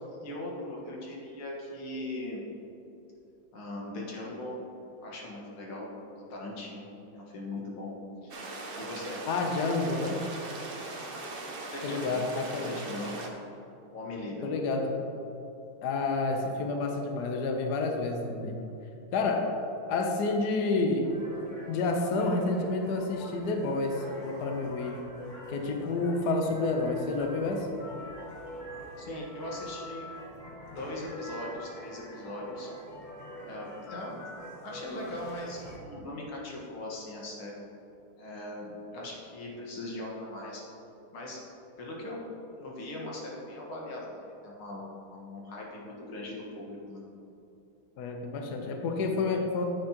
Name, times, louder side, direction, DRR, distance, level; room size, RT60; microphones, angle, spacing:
voice 1, 0.2-2.4 3.5-4.5 5.0-5.9 6.3-7.9 8.2-8.4 8.8-9.2 11.7-12.2 12.5-13.1 13.9-14.5 29.0-30.2 30.7-32.7 33.5-34.3 34.6-37.6 38.2-40.6 41.1-41.4 41.8-42.2 42.5-47.0, left 1 dB, 80° left, -3 dB, 2.4 m, -40 dB
sound 1, 8.3-13.3, right 2 dB, 55° right, 0.6 m, -40 dB
voice 2, 9.3-10.2 11.8-12.7 14.4-15.0 15.8-18.6 19.1-19.5 19.9-21.1 21.7-25.0 25.5-27.7 48.0-49.6, left 3 dB, 60° left, 3 dB, 1.2 m, -29 dB
sound 2, 21.0-35.8, equal, 35° left, 0.7 m, -45 dB
9.8 x 8.8 x 2.9 m, 2.9 s
omnidirectional pair, 2.3 m